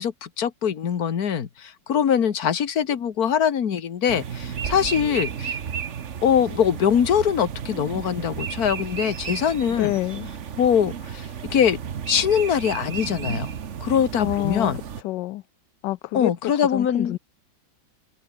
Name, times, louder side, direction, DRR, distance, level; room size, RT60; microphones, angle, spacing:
voice 1, 0.0-5.6 6.2-9.9 10.6-11.8 12.1-13.5 13.8-14.8 16.1-17.2, left 8 dB, 55° left, 1.8 m, -23 dB
sound 1, 4.1-15.0, right 7 dB, 45° right, 1.2 m, -33 dB
voice 2, 9.7-10.3 14.2-14.7 15.0-15.4 15.8-17.2, left 16 dB, 75° left, 1.2 m, -27 dB
omnidirectional pair, 2.0 m